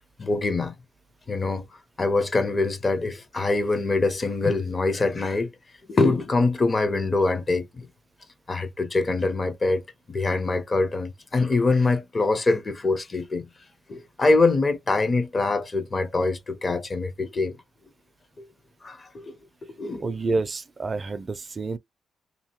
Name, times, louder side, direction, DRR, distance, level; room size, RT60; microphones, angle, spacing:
voice 1, 0.2-0.7 1.3-1.6 2.0-5.5 5.9-7.9 8.5-9.8 10.1-13.5 13.9-17.6 18.4-18.5 18.8-19.4 19.8-20.1, left 3 dB, 35° left, 0.6 m, -24 dB
voice 2, 20.0-21.8, right 3 dB, 35° right, 0.3 m, -28 dB
2.8 x 2.7 x 2.9 m
cardioid pair, 80°, 0 cm